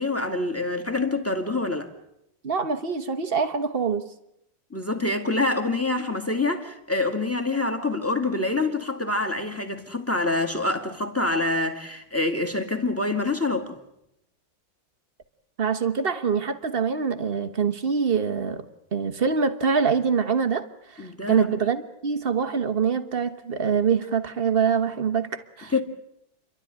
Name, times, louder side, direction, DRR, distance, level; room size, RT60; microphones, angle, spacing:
voice 1, 0.0-1.9 4.7-13.8 21.0-21.5 25.7-25.8, left 2 dB, 5° left, 1.9 m, -26 dB
voice 2, 2.4-4.0 15.6-18.6 18.9-20.7 21.0-25.7, right 6 dB, 35° right, 1.3 m, -24 dB
29.0 x 12.5 x 10.0 m
omnidirectional pair, 2.1 m